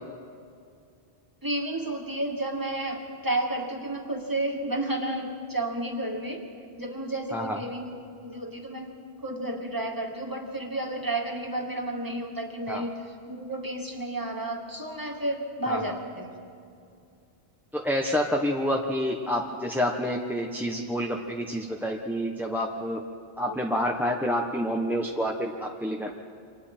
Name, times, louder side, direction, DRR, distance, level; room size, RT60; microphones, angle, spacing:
voice 1, 1.4-6.4 6.8-7.9 8.2-8.9 9.2-16.4 23.5-23.6, right 1 dB, 20° right, 1 dB, 2.2 m, -31 dB
voice 2, 17.7-23.0 23.4-26.1, equal, ahead, 0 dB, 1.0 m, -28 dB
28.5 x 25.5 x 4.4 m, 2.4 s
omnidirectional pair, 1.0 m